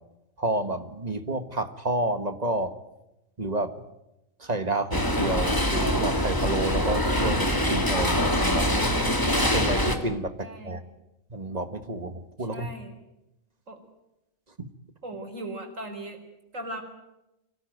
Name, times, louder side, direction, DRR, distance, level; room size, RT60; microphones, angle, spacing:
voice 1, 0.4-2.7 3.4-3.8 4.4-8.7 9.4-10.8 11.3-12.7 14.6-14.7, right 2 dB, 30° right, 10 dB, 1.7 m, -30 dB
sound 1, 4.9-10.0, equal, 15° left, 2.3 m, -24 dB
voice 2, 10.4-10.9 12.4-13.0 13.7-13.8 15.0-16.2 16.5-16.8, right 1 dB, 75° right, 5 dB, 4.6 m, -39 dB
25.5 x 17.5 x 9.3 m, 0.92 s
omnidirectional pair, 1.4 m